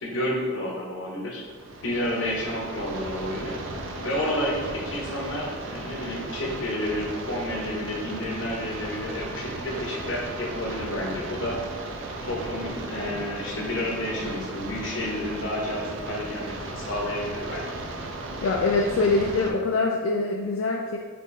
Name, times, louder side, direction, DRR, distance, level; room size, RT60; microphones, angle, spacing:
voice 1, 0.0-1.4 1.8-3.6 4.0-11.6 12.2-17.7, left 1 dB, 65° left, -1 dB, 0.9 m, -30 dB
sound 1, 1.4-19.5, right 2 dB, 65° right, 0.5 m, -36 dB
voice 2, 18.4-21.0, left 3 dB, 85° left, 0 dB, 0.4 m, -24 dB
4.3 x 3.0 x 3.1 m, 1.5 s
head